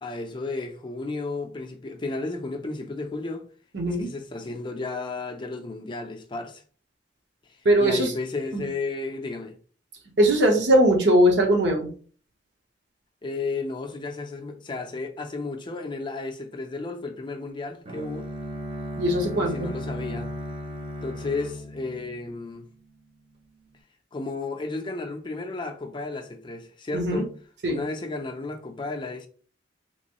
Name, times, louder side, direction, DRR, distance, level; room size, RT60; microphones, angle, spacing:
voice 1, 0.0-3.4 3.9-6.6 7.8-9.5 13.2-18.3 19.4-20.3 21.0-22.7 24.1-27.3 27.7-29.3, left 3 dB, 25° left, 0.4 m, -33 dB
voice 2, 3.7-4.1 7.6-8.1 8.5-8.7 10.2-11.9 19.0-19.7 26.9-27.2 27.6-27.8, right 1 dB, 70° right, 1.0 m, -20 dB
Bowed string instrument, 17.8-22.8, equal, 30° right, 0.6 m, -36 dB
3.4 x 3.0 x 2.9 m
head